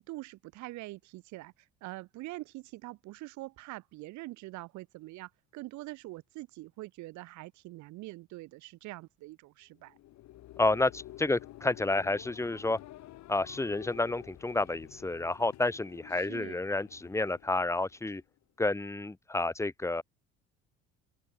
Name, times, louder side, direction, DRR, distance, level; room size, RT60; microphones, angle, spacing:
voice 1, 0.0-1.5 1.8-10.0 16.2-16.6, right 19 dB, 70° right, 2.3 m, -44 dB
sound 1, 9.7-18.4, left 15 dB, 65° left, 6.8 m, -50 dB
voice 2, 10.6-12.8 13.3-18.2 18.6-20.0, left 2 dB, 10° left, 1.2 m, -30 dB
hypercardioid pair, 70°, 30 cm